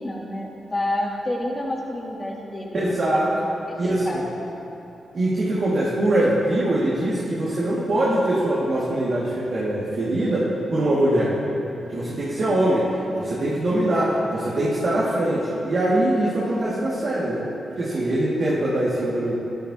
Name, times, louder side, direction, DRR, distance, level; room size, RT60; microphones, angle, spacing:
voice 1, 0.0-4.2 12.5-13.1, left 1 dB, 30° left, -4 dB, 2.8 m, -30 dB
voice 2, 2.7-3.3 3.8-4.2 5.1-11.4 11.9-12.9 13.2-17.4 17.8-19.3, right 1 dB, 60° right, -8 dB, 2.3 m, -22 dB
13.5 x 12.5 x 3.0 m, 2.9 s
supercardioid pair, 45°, 0 cm